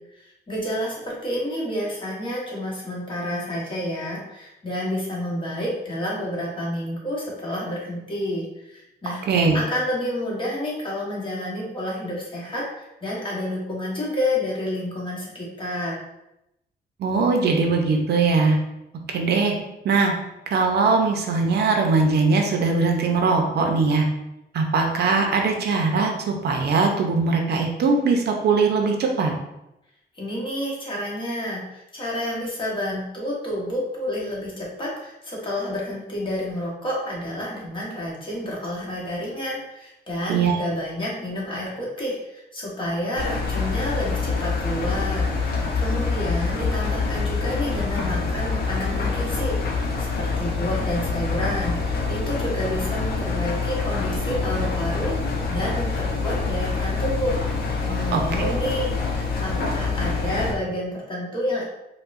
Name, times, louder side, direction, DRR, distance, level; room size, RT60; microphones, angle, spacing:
voice 1, 0.1-9.2 9.5-16.0 30.1-55.1 55.5-57.4 57.9-58.9 59.4-61.6, left 1 dB, 30° left, -5 dB, 1.1 m, -29 dB
voice 2, 9.3-9.6 17.0-18.6 19.1-19.5 19.8-20.1 20.5-24.1 24.5-29.3 40.3-40.6 58.1-58.5, right 4 dB, 70° right, 2 dB, 0.6 m, -21 dB
Engine, 43.2-60.5, left 4 dB, 60° left, 0.6 m, -26 dB
4.6 x 2.2 x 2.5 m, 0.88 s
wide cardioid pair, 140°, 18 cm